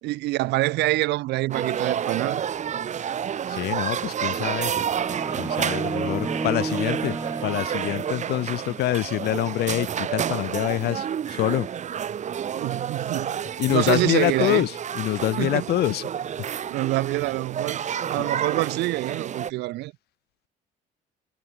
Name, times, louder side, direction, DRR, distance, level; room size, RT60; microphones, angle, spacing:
voice 1, 0.0-2.4 12.5-13.4 13.7-14.7 15.4-15.7 16.7-19.9, right 19 dB, 85° right, 5.9 m, -26 dB
sound 1, 1.5-19.5, right 8 dB, 45° right, 1.7 m, -30 dB
voice 2, 3.5-4.7 5.4-7.2 7.4-11.7 13.6-16.1 18.2-18.3, left 15 dB, 75° left, 1.9 m, -26 dB
sound 2, 4.7-8.7, right 3 dB, 20° right, 3.9 m, -32 dB
cardioid pair, 110°, 17 cm